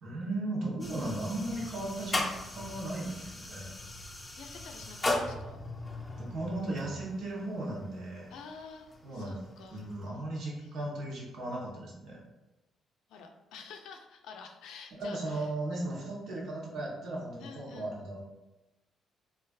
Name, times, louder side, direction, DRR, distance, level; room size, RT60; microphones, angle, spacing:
voice 1, 0.0-2.2 2.5-3.7 6.2-8.3 9.0-9.4 9.7-12.2 15.0-18.2, right 2 dB, 75° right, -3 dB, 0.8 m, -36 dB
sound 1, 0.8-10.1, left 2 dB, 20° left, 0.5 m, -38 dB
voice 2, 4.4-5.6 8.3-9.8 10.6-10.9 13.1-15.5 17.4-18.0, left 5 dB, 85° left, 4 dB, 0.4 m, -49 dB
3.3 x 2.4 x 2.3 m, 1.0 s
cardioid pair, 90°, 0 cm